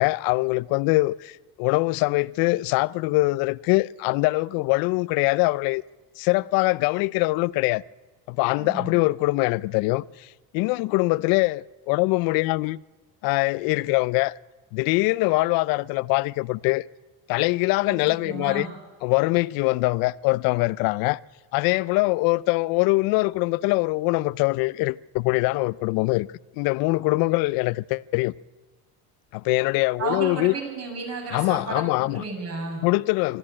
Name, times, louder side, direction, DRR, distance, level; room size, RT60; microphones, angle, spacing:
voice 1, 0.0-5.8 6.2-7.8 8.3-10.3 10.5-12.8 13.2-14.3 14.7-16.8 17.3-18.7 19.0-21.2 21.5-26.3 26.6-28.3 29.3-30.5 31.3-32.2 32.8-33.4, left 22 dB, 75° left, 0.6 m, -23 dB
voice 2, 8.6-9.0 17.9-18.7 30.0-32.8, right 4 dB, 45° right, 6.7 m, -33 dB
24.5 x 13.5 x 8.7 m
cardioid pair, 135°, 35 cm